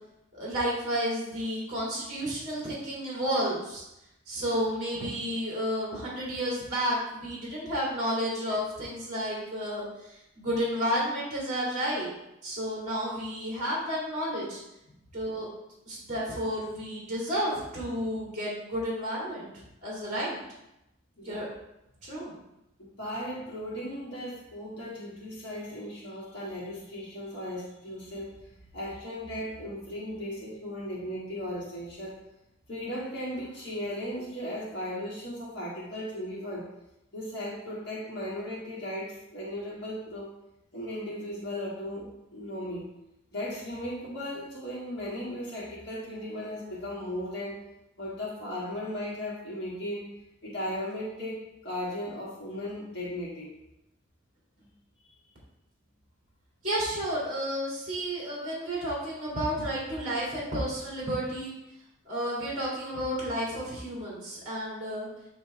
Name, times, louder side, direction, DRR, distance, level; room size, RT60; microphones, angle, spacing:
voice 1, 0.3-3.8 4.3-12.1 12.4-14.6 15.1-15.5 15.9-19.5 19.8-20.4 21.2-21.5 22.0-22.4 56.6-61.5 62.1-65.1, equal, 35° right, -5 dB, 2.2 m, -31 dB
voice 2, 23.0-32.2 32.7-36.7 37.1-40.3 40.7-42.9 43.3-47.6 48.0-50.0 50.4-53.5 54.6-54.7, left 1 dB, 55° left, -6 dB, 1.5 m, -36 dB
7.6 x 3.3 x 4.1 m, 0.89 s
head